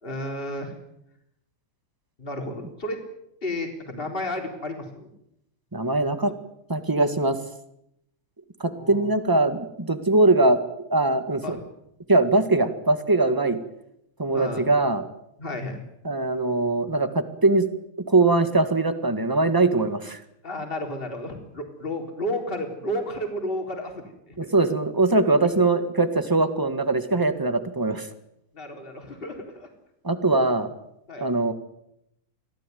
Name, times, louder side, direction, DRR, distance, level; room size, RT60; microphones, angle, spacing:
voice 1, 0.0-0.7 2.2-3.0 3.4-5.1 8.7-9.1 11.4-11.6 14.3-14.7 15.4-15.8 20.4-24.5 28.5-29.7 31.1-31.3, left 1 dB, 25° left, 3 dB, 4.0 m, -32 dB
voice 2, 5.7-6.3 6.7-7.4 8.6-10.6 10.9-11.6 12.1-13.6 14.2-15.0 16.0-17.7 18.1-20.2 24.4-28.1 30.0-30.7 31.2-31.5, right 2 dB, 10° right, 10 dB, 1.6 m, -21 dB
25.5 x 17.0 x 9.3 m, 0.79 s
omnidirectional pair, 2.4 m